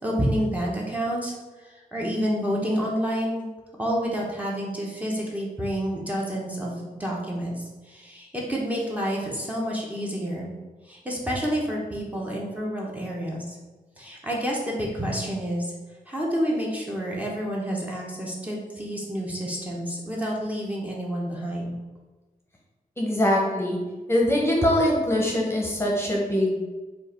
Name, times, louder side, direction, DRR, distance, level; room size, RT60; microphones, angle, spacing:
voice 1, 0.0-3.5 3.8-10.5 10.8-13.6 14.0-15.7 16.1-21.7, equal, 10° right, -4 dB, 0.9 m, -29 dB
voice 2, 23.0-23.8 24.1-26.7, left 1 dB, 15° left, -2 dB, 0.9 m, -23 dB
4.7 x 2.5 x 4.3 m, 1.2 s
wide cardioid pair, 105°, 15 cm